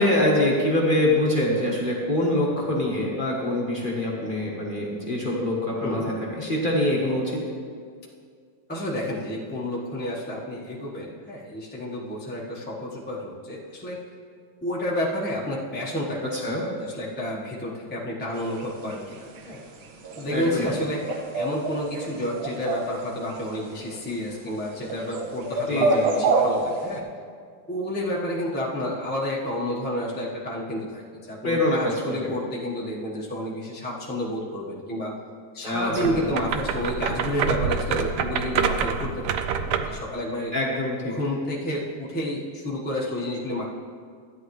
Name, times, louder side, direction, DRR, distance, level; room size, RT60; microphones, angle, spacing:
voice 1, 0.0-7.4 16.3-16.7 20.3-20.7 25.7-26.1 31.4-32.3 35.6-36.2 40.5-41.2, left 1 dB, 30° left, -4 dB, 1.3 m, -24 dB
voice 2, 8.7-14.0 14.6-16.3 16.8-19.2 19.4-19.6 20.2-27.0 27.7-35.1 35.5-39.4 39.6-40.5 41.1-43.6, left 1 dB, 5° left, -5 dB, 1.0 m, -30 dB
sound 1, 18.4-27.0, right 3 dB, 85° right, 1.7 m, -28 dB
sound 2, 35.9-40.0, right 6 dB, 70° right, 1.1 m, -27 dB
13.5 x 9.6 x 3.2 m, 2.2 s
omnidirectional pair, 2.2 m